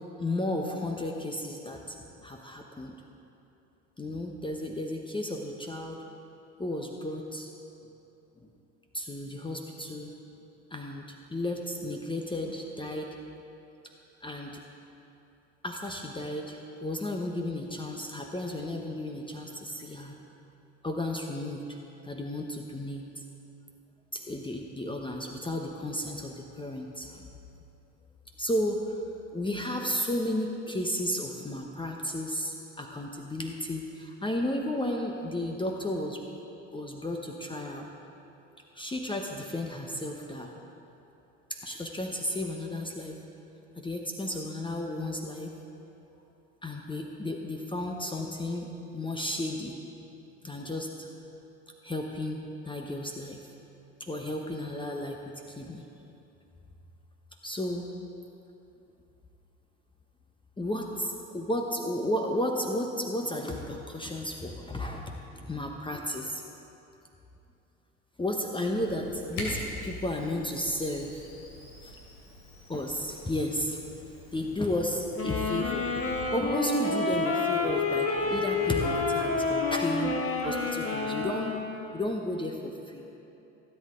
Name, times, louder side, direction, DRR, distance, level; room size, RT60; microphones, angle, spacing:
voice 1, 0.2-2.9 4.0-6.0 6.6-7.5 8.4-8.5 8.9-10.1 10.7-13.1 14.2-14.6 15.6-20.2 20.8-21.6 22.0-23.2 24.1-27.2 28.4-29.0 29.3-36.2 36.7-37.9 38.7-40.5 41.5-43.2 43.8-45.6 46.6-49.8 50.4-51.1 51.8-53.5 54.0-55.2 55.5-55.9 57.4-58.0 60.6-66.4 68.2-71.3 71.8-71.9 72.7-73.8 74.3-75.9 76.3-83.0, left 1 dB, 15° left, 2 dB, 1.0 m, -33 dB
Camera, 68.8-76.2, left 1 dB, 75° left, 2.8 m, -44 dB
sound 1, 75.1-81.7, left 3 dB, 40° left, 1.6 m, -29 dB
16.5 x 8.4 x 3.8 m, 2.8 s
hypercardioid pair, 65°, 35 cm